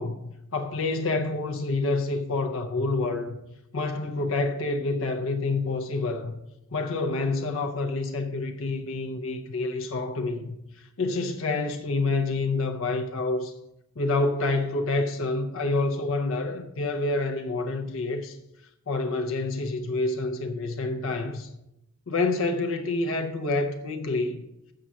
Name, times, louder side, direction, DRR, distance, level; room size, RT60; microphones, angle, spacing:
voice 1, 0.0-3.4 3.7-6.4 6.7-13.5 14.0-18.4 18.9-21.5 22.1-24.4, left 3 dB, 65° left, 0.7 m, -28 dB
7.5 x 5.6 x 6.2 m
head